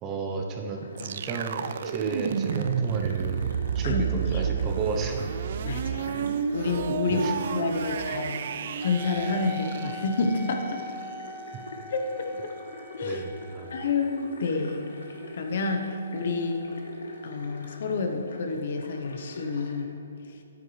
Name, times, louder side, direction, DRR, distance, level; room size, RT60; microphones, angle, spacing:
voice 1, 0.0-5.4 7.1-7.4 13.0-13.7, right 4 dB, 25° right, 3 dB, 0.8 m, -33 dB
sound 1, 0.8-19.9, left 2 dB, 80° left, 1.4 m, -44 dB
sound 2, 1.0-10.8, right 8 dB, 55° right, 0.3 m, -31 dB
voice 2, 5.6-6.1 6.5-8.4 8.8-10.8 11.9-12.5 13.0-13.2 13.7-14.9 15.3-16.6 17.2-19.9, left 3 dB, 60° left, 4 dB, 1.0 m, -29 dB
Wind instrument woodwind instrument, 8.8-17.7, left 2 dB, 10° left, 0.5 m, -44 dB
9.2 x 9.1 x 3.3 m, 2.8 s
hypercardioid pair, 145°, 0 cm